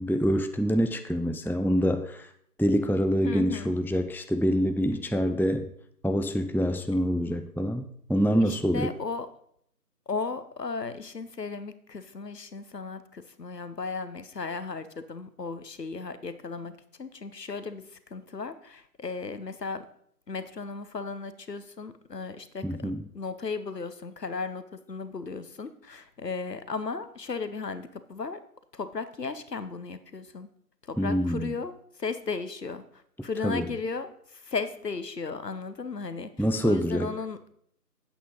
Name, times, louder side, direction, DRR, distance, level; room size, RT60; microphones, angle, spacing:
voice 1, 0.0-2.3 2.6-5.7 6.0-8.9 22.6-23.0 31.0-31.6 33.4-33.7 36.4-37.2, equal, 5° left, 8 dB, 0.4 m, -26 dB
voice 2, 3.2-3.7 8.4-9.3 10.1-19.8 20.3-28.4 28.7-30.5 30.9-32.8 33.2-34.1 34.4-37.4, left 4 dB, 80° left, 12 dB, 1.0 m, -35 dB
8.6 x 8.3 x 3.8 m, 0.67 s
figure-of-eight pair, 180°, 48 cm